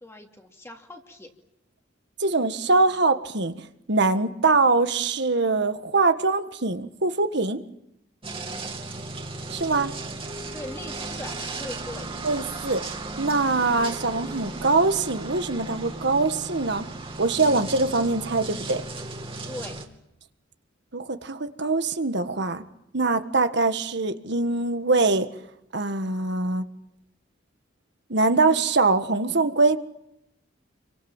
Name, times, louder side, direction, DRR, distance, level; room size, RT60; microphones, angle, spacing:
voice 1, 0.0-1.3 10.5-12.1 19.4-19.8, left 1 dB, 15° left, 2 dB, 2.8 m, -40 dB
voice 2, 2.2-7.6 9.5-9.9 12.2-12.8 13.2-16.8 17.2-18.8 20.9-22.6 22.9-25.3 25.7-26.6 28.1-29.8, right 3 dB, 65° right, 8 dB, 1.7 m, -23 dB
sound 1, 8.2-19.9, right 2 dB, 30° right, 2.7 m, -35 dB
29.5 x 24.5 x 7.3 m, 0.81 s
head